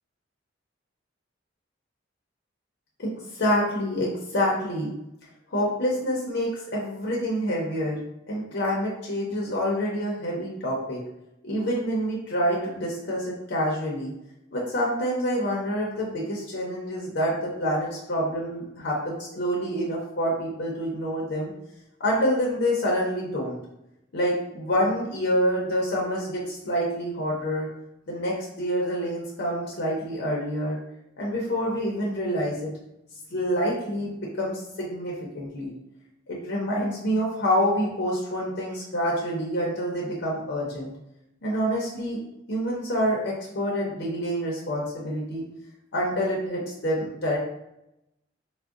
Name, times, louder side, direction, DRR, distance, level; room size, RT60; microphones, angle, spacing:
voice 1, 3.0-4.9 5.5-8.0 8.3-11.0 11.4-14.1 14.5-21.5 22.0-23.6 24.1-27.7 28.1-30.8 31.2-32.7 33.3-35.7 36.3-40.9 41.4-42.2 42.5-45.4 45.9-47.4, equal, 60° left, -3 dB, 0.6 m, -27 dB
3.5 x 2.1 x 2.4 m, 0.85 s
head